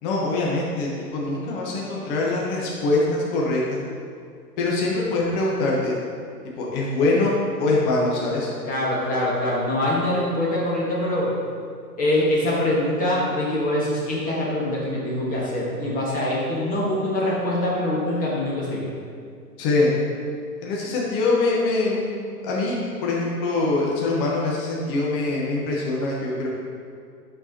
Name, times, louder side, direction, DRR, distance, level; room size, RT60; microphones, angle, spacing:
voice 1, 0.0-3.8 4.6-5.9 6.6-8.5 19.6-19.9 20.6-22.2 22.4-22.8 23.0-26.5, left 2 dB, 35° left, -4 dB, 1.2 m, -23 dB
voice 2, 8.6-11.3 12.0-18.8, left 1 dB, 15° left, -6 dB, 1.6 m, -24 dB
11.0 x 4.6 x 2.9 m, 2.3 s
hypercardioid pair, 125°, 49 cm